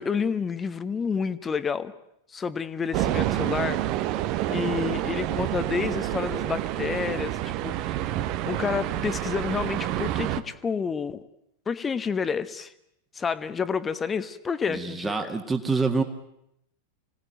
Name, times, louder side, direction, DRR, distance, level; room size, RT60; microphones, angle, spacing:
voice 1, 0.0-1.9 2.3-4.1 4.5-8.1 8.5-11.2 11.7-12.7 13.1-15.3, left 6 dB, 20° left, 13 dB, 1.1 m, -29 dB
sound 1, 2.9-10.4, right 13 dB, 40° right, 1.1 m, -28 dB
voice 2, 14.7-16.0, right 4 dB, 10° right, 4 dB, 1.9 m, -26 dB
25.5 x 18.0 x 9.1 m, 0.79 s
figure-of-eight pair, 90°, 0 cm